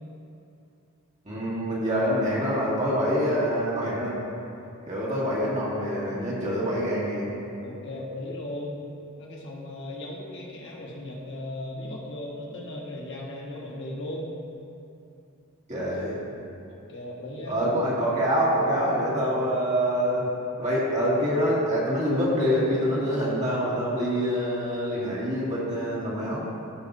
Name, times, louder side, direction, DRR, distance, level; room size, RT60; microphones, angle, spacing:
voice 1, 1.2-4.2 4.8-7.3 15.7-16.2 17.4-20.3 20.6-26.5, equal, 35° right, -7 dB, 2.1 m, -25 dB
voice 2, 7.6-8.9 9.2-14.3 16.7-17.6, left 1 dB, 60° left, -3 dB, 1.5 m, -37 dB
16.0 x 5.8 x 2.7 m, 2.7 s
head